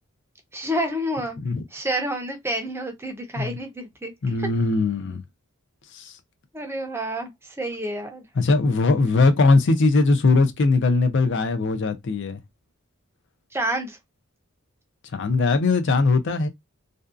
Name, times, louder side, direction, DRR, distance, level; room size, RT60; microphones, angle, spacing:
voice 1, 0.5-1.4 1.7-4.1 4.4-4.5 6.5-8.2 13.5-14.0, right 1 dB, 10° right, 0.5 m, -29 dB
voice 2, 4.2-5.2 5.9-6.1 8.4-12.4 15.1-16.5, left 3 dB, 55° left, 0.5 m, -20 dB
2.6 x 2.2 x 2.4 m
head